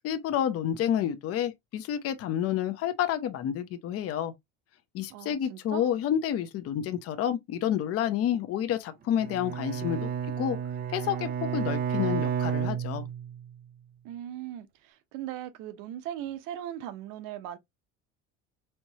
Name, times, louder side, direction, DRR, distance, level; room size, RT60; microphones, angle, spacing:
voice 1, 0.0-4.3 4.9-10.1 10.4-10.6 10.9-13.0, left 10 dB, 45° left, 0.7 m, -29 dB
voice 2, 5.1-5.9 14.0-17.6, right 11 dB, 80° right, 0.8 m, -39 dB
Bowed string instrument, 9.2-13.5, right 8 dB, 30° right, 0.4 m, -31 dB
4.4 x 2.9 x 2.7 m
cardioid pair, 140°, 32 cm